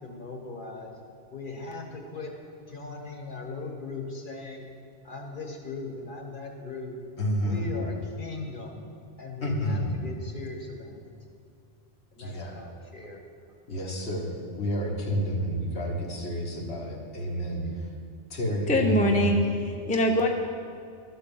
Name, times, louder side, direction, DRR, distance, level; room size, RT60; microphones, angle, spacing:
voice 1, 0.0-0.9 1.3-2.4 2.7-4.8 5.0-7.0 7.4-8.8 9.2-11.0 12.1-13.2, left 3 dB, 50° left, 1 dB, 1.4 m, -39 dB
voice 2, 7.2-7.6 9.4-9.9 12.2-12.6 13.7-17.9 18.3-19.3, equal, 75° left, -1 dB, 1.6 m, -30 dB
voice 3, 18.7-20.3, left 1 dB, 10° left, 2 dB, 0.6 m, -23 dB
12.5 x 4.3 x 7.0 m, 2.3 s
omnidirectional pair, 1.2 m